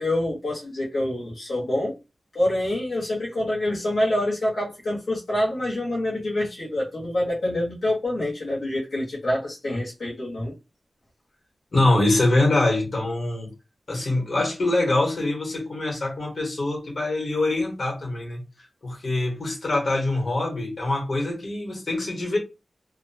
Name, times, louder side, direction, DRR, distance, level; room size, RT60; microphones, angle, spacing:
voice 1, 0.0-2.0 2.3-10.5, left 1 dB, 85° left, 1.1 m, -26 dB
voice 2, 11.7-13.5 13.9-18.4 18.8-22.4, left 2 dB, 60° left, 1.2 m, -24 dB
2.6 x 2.2 x 2.7 m
wide cardioid pair, 105°, 0 cm